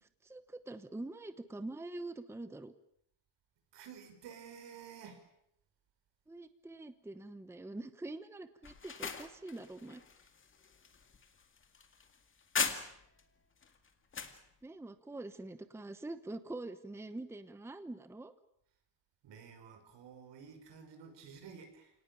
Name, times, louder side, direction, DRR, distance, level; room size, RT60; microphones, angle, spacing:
voice 1, 0.0-2.7 6.3-10.0 14.6-18.3, right 2 dB, 5° right, 11 dB, 0.9 m, -45 dB
voice 2, 3.7-5.2 19.2-21.9, right 7 dB, 80° right, 7 dB, 6.0 m, -52 dB
sound 1, 8.6-13.2 13.6-14.4, left 5 dB, 30° left, 2.2 m, -40 dB
29.0 x 19.0 x 8.9 m, 0.77 s
cardioid pair, 175°, 42 cm